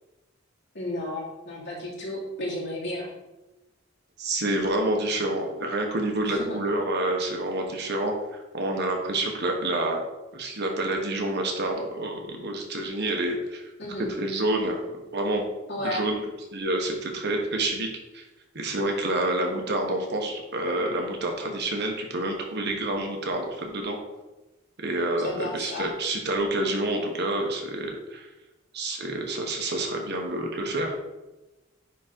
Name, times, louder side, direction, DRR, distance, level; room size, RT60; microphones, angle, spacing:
voice 1, 0.7-3.1 6.5-6.6 13.8-14.1 15.7-16.0 25.2-25.9, left 1 dB, 65° left, -5 dB, 2.8 m, -32 dB
voice 2, 4.2-10.0 10.3-13.7 14.2-15.4 15.8-16.2 16.5-17.9 18.1-18.2 18.5-24.0 24.8-28.3 28.7-31.0, right 1 dB, 60° right, 2 dB, 1.4 m, -28 dB
10.0 x 3.8 x 4.6 m, 1.1 s
head